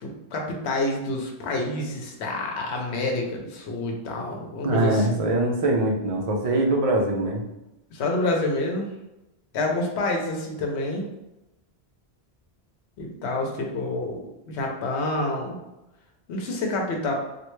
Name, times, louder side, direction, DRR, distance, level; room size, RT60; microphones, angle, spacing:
voice 1, 0.0-5.2 7.9-8.9 9.5-11.0 13.0-14.2 14.5-15.6 16.3-17.1, left 2 dB, 80° left, 1 dB, 1.0 m, -28 dB
voice 2, 4.6-7.4, right 2 dB, 45° right, 1 dB, 0.5 m, -23 dB
3.1 x 2.5 x 3.1 m, 0.95 s
omnidirectional pair, 1.1 m